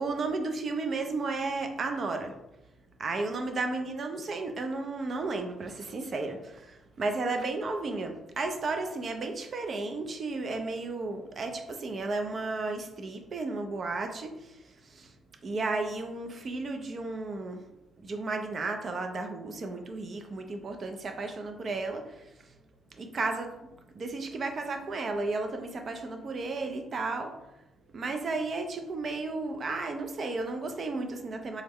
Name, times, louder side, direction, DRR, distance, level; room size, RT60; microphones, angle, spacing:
voice 1, 0.0-2.4 3.0-15.1 15.4-17.7 18.0-22.5 22.9-23.7 23.9-27.5 27.9-31.6, right 3 dB, 45° right, 5 dB, 0.5 m, -33 dB
3.5 x 2.1 x 3.4 m, 0.92 s
cardioid pair, 90°, 0 cm